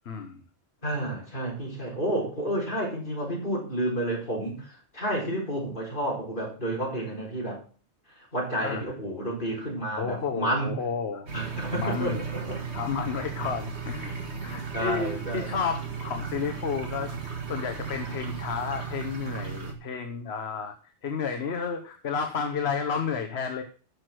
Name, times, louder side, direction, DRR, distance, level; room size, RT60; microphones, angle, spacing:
voice 1, 0.0-0.4 8.6-8.9 10.0-11.3 11.7-12.2 12.7-14.1 14.4-20.7 21.0-23.6, left 6 dB, 65° left, 6 dB, 1.3 m, -31 dB
voice 2, 0.8-7.6 8.3-10.7 11.3-12.6 14.0-14.3 14.7-15.6, right 1 dB, 45° left, -2 dB, 4.8 m, -30 dB
sound 1, 11.3-19.7, right 6 dB, 75° right, 2.1 m, -35 dB
11.5 x 6.4 x 6.1 m, 0.39 s
omnidirectional pair, 1.2 m